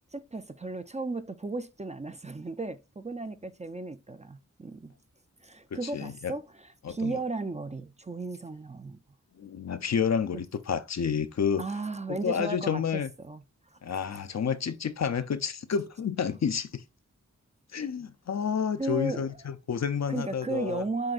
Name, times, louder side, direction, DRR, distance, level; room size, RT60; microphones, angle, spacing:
voice 1, 0.0-5.0 5.4-9.0 11.6-13.4 13.7-13.8 18.8-19.4 20.1-21.1, right 3 dB, 20° right, 0.4 m, -35 dB
voice 2, 5.7-6.3 6.8-7.2 9.4-11.7 12.2-13.1 13.8-16.8 17.7-20.8, left 7 dB, 60° left, 0.5 m, -30 dB
7.6 x 2.6 x 2.4 m
cardioid pair, 40°, 31 cm